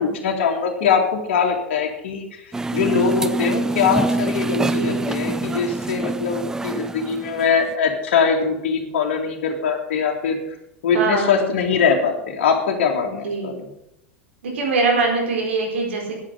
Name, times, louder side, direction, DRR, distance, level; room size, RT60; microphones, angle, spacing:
voice 1, 0.0-10.4 10.8-13.5, left 6 dB, 55° left, 0 dB, 2.6 m, -22 dB
sound 1, 2.5-7.7, right 2 dB, 10° right, 0.4 m, -25 dB
voice 2, 4.5-5.0 10.9-11.4 13.0-13.5 14.4-16.2, right 3 dB, 65° right, 1 dB, 4.5 m, -23 dB
9.8 x 9.7 x 9.0 m, 0.82 s
figure-of-eight pair, 85°, 7 cm